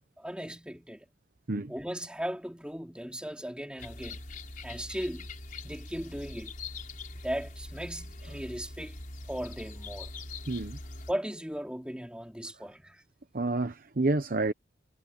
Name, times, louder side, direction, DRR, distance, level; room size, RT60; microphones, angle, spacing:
voice 1, 0.2-1.0 1.7-4.2 4.6-5.3 5.6-6.5 7.2-9.0 9.3-10.1 11.1-13.0, equal, 5° right, 3.1 m, -37 dB
sound 1, 3.8-11.1, left 2 dB, 45° left, 5.0 m, -43 dB
voice 2, 10.5-10.8 13.3-14.5, right 2 dB, 50° right, 0.9 m, -29 dB
head